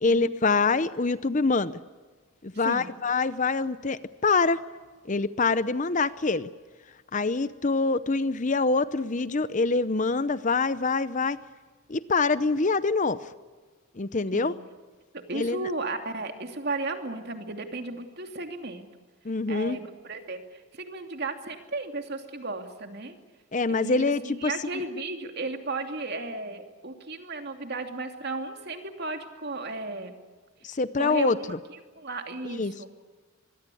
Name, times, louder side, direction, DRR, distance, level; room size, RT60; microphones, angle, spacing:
voice 1, 0.0-1.8 2.4-4.6 5.1-6.5 7.1-11.4 11.9-13.2 14.0-14.6 15.3-15.7 19.2-19.8 23.5-24.5 30.6-31.6 32.4-32.7, left 3 dB, 35° left, 15 dB, 0.7 m, -25 dB
voice 2, 15.1-18.9 19.5-23.1 23.7-30.1 31.0-31.5 31.9-32.9, right 3 dB, 50° right, 5 dB, 2.8 m, -35 dB
25.0 x 21.5 x 8.5 m, 1.4 s
head